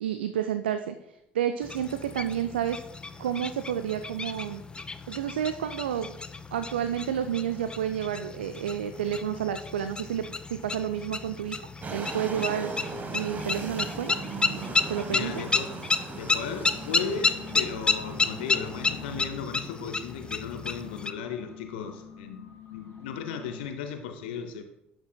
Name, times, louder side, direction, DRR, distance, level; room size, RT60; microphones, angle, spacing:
voice 1, 0.0-2.8 3.2-4.6 5.1-6.1 6.5-11.6 11.9-12.7 13.1-14.2 14.9-15.5, right 9 dB, 75° right, 10 dB, 0.3 m, -30 dB
sound 1, 1.6-21.1, left 3 dB, 15° left, 0.5 m, -32 dB
sound 2, 11.8-19.2, right 3 dB, 30° right, 1.1 m, -38 dB
voice 2, 15.1-15.7 16.1-24.6, left 6 dB, 65° left, 7 dB, 0.6 m, -36 dB
sound 3, 16.5-23.7, left 8 dB, 45° left, 1.8 m, -46 dB
12.0 x 6.2 x 2.2 m, 0.84 s
figure-of-eight pair, 60°, 6 cm